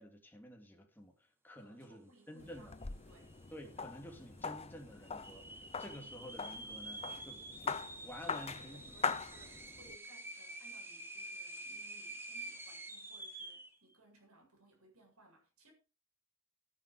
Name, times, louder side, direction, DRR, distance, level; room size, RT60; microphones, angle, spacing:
voice 1, 0.0-2.7 3.5-8.8, equal, 10° left, 3.0 m, -51 dB
voice 2, 1.6-3.4 4.3-4.5 8.2-15.7, right 2 dB, 90° right, 7.8 m, -64 dB
sound 1, 2.4-10.0, left 5 dB, 30° left, 0.7 m, -42 dB
sound 2, 2.8-2.9 3.1-3.7 4.2-4.3 5.0-13.8, right 2 dB, 10° right, 1.7 m, -48 dB
14.0 x 10.5 x 5.0 m
head